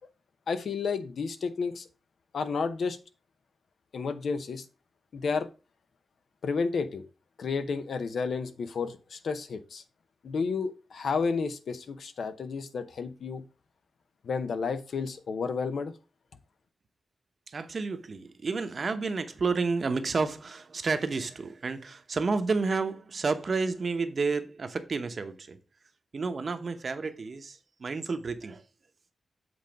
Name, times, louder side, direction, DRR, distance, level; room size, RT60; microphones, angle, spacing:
voice 1, 0.5-1.9 2.3-3.0 3.9-4.6 5.1-5.5 6.4-7.0 7.4-9.8 10.2-13.4 14.2-15.9, left 5 dB, 65° left, 0.8 m, -31 dB
voice 2, 17.5-25.6 26.1-28.6, right 4 dB, 45° right, 0.9 m, -30 dB
7.9 x 4.0 x 5.1 m
wide cardioid pair, 145°, 0 cm